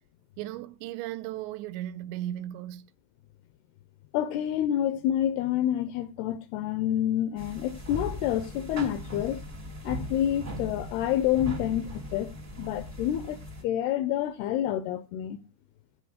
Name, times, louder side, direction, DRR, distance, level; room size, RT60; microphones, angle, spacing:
voice 1, 0.4-2.9, right 13 dB, 80° right, 2.8 m, -36 dB
voice 2, 4.1-9.4 9.8-15.4, left 11 dB, 80° left, 2.4 m, -28 dB
sound 1, 7.4-13.6, left 1 dB, 55° right, 0.8 m, -39 dB
14.5 x 5.1 x 5.0 m
omnidirectional pair, 5.1 m